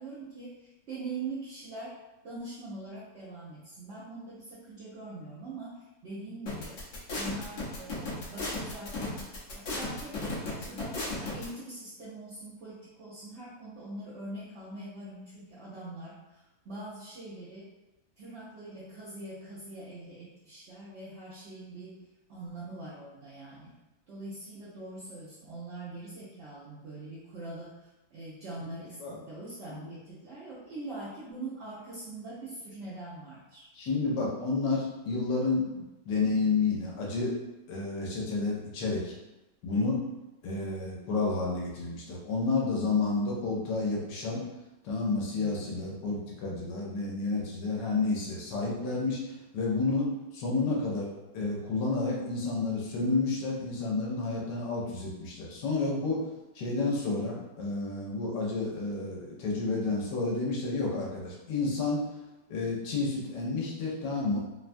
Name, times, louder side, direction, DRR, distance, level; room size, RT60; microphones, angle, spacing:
voice 1, 0.0-6.8 7.1-9.2 9.5-17.7 18.2-23.8 24.1-33.7 45.4-45.9, right 2 dB, 60° right, -9 dB, 0.7 m, -43 dB
sound 1, 6.5-11.4, left 2 dB, 60° left, 1.0 m, -34 dB
voice 2, 28.6-29.2 29.7-29.9 33.7-37.3 37.7-39.1 39.6-40.0 40.4-44.4 44.8-49.2 49.5-56.2 56.5-62.0 62.5-64.4, left 3 dB, 80° left, -3 dB, 1.4 m, -30 dB
3.3 x 2.2 x 2.5 m, 0.99 s
omnidirectional pair, 1.8 m